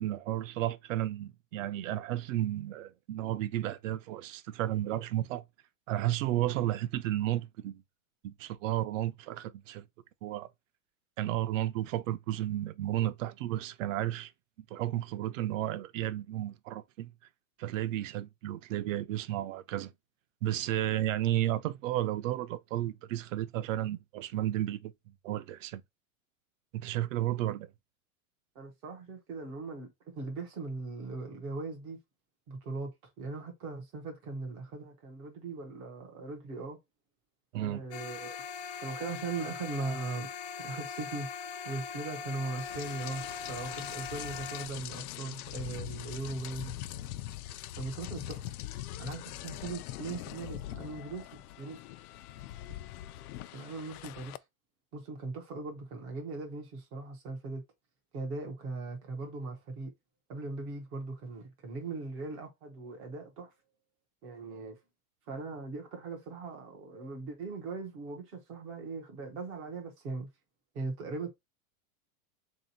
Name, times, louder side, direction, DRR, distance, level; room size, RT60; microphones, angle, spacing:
voice 1, 0.0-5.4 5.9-7.8 8.2-9.8 10.2-10.5 11.2-14.3 14.7-17.1 17.6-19.9 20.4-24.9 25.2-25.8 26.7-27.7 37.5-37.8, right 13 dB, 60° right, 0.6 m, -33 dB
voice 2, 28.6-32.0 32.5-32.9 33.2-36.8 37.6-38.3 38.8-40.3 40.6-41.3 41.6-46.7 47.8-48.4 49.0-51.8 53.5-54.4 54.9-57.6 58.1-59.9 60.3-63.5 64.2-64.8 65.3-70.3 70.7-71.3, right 3 dB, 15° right, 0.3 m, -39 dB
sound 1, 37.9-44.7, left 6 dB, 50° left, 0.7 m, -41 dB
Rain, 42.6-54.4, left 13 dB, 85° left, 0.5 m, -42 dB
3.7 x 2.7 x 4.0 m
supercardioid pair, 170°, 43 cm